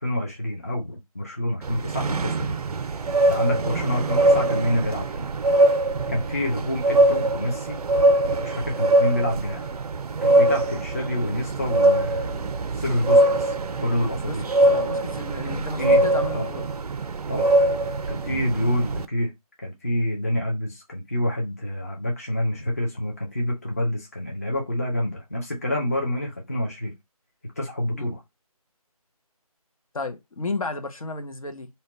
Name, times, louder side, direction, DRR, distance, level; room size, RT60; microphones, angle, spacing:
voice 1, 0.0-2.6 3.3-5.1 6.1-7.8 8.4-9.7 10.2-12.4 12.7-13.5 13.8-14.5 15.4-16.0 16.3-16.5 17.3-17.5 18.1-19.3 19.6-26.9 27.6-28.2, left 1 dB, 25° left, 0.5 m, -27 dB
sound 1, 1.6-19.1, right 1 dB, 85° right, 0.4 m, -22 dB
voice 2, 14.7-16.7 18.3-18.4 27.9-28.1 29.9-31.7, left 3 dB, 65° left, 0.7 m, -33 dB
2.8 x 2.2 x 3.9 m
figure-of-eight pair, 170°, 19 cm